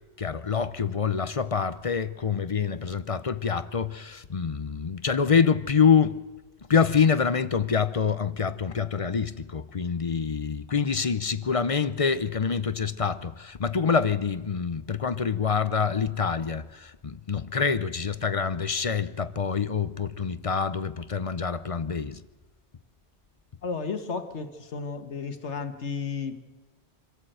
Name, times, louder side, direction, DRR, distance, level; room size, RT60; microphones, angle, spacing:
voice 1, 0.2-6.2 6.7-22.2, left 6 dB, 35° left, 0.6 m, -26 dB
voice 2, 23.6-26.4, left 5 dB, 80° left, 1.5 m, -33 dB
25.0 x 14.0 x 7.8 m
omnidirectional pair, 1.2 m